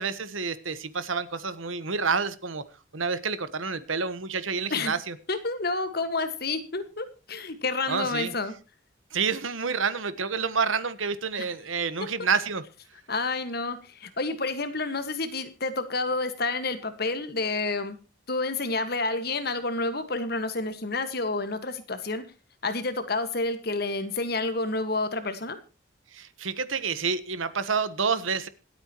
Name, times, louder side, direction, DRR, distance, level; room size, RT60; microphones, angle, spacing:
voice 1, 0.0-2.6 2.9-5.1 7.9-8.3 9.1-12.6 26.1-28.5, right 5 dB, 90° right, 14 dB, 1.2 m, -28 dB
voice 2, 5.3-8.5 13.1-18.0 18.3-22.2 22.6-25.6, left 3 dB, 50° left, 10 dB, 1.7 m, -29 dB
26.0 x 8.9 x 3.0 m, 0.33 s
head